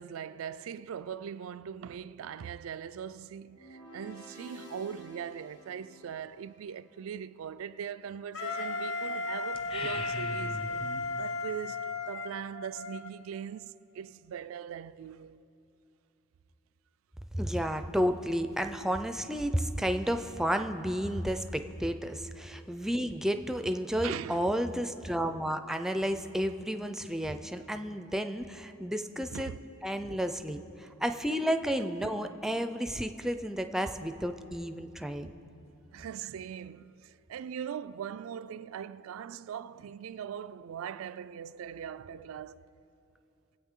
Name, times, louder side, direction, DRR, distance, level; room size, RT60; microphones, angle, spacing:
voice 1, 0.0-10.9 11.2-15.4 22.7-22.8 24.0-24.5 29.3-29.6 30.8-30.9 35.9-42.7, right 8 dB, 85° right, 0.3 m, -41 dB
sound 1, 3.5-6.8, equal, 55° left, 2.1 m, -51 dB
Wind instrument woodwind instrument, 8.3-13.1, left 3 dB, 75° left, 0.8 m, -35 dB
sound 2, 9.5-11.1, left 1 dB, 25° left, 0.8 m, -39 dB
voice 2, 17.3-29.5 29.8-35.3, equal, ahead, 0.4 m, -32 dB
23.0 x 8.4 x 3.7 m
head